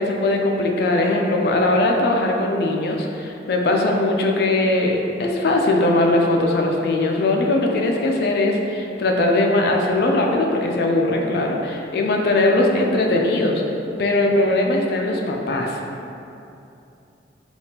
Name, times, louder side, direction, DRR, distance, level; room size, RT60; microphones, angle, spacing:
voice 1, 0.0-13.6 14.0-15.8, left 2 dB, 60° left, 1 dB, 0.3 m, -20 dB
3.4 x 2.4 x 2.8 m, 2.7 s
head